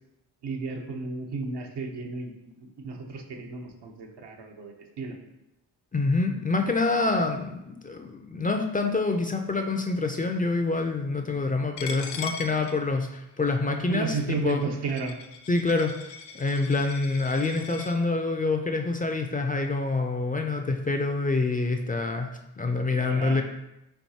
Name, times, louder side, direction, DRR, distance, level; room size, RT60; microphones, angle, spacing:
voice 1, 0.4-5.2 13.9-15.2 22.9-23.4, right 3 dB, 75° right, 2 dB, 0.9 m, -33 dB
voice 2, 5.9-14.6 15.5-23.4, left 3 dB, 20° left, 4 dB, 0.4 m, -26 dB
Coin (dropping), 11.8-17.9, left 6 dB, 85° left, 0.5 m, -41 dB
4.5 x 3.9 x 2.8 m, 0.88 s
cardioid pair, 65°, 41 cm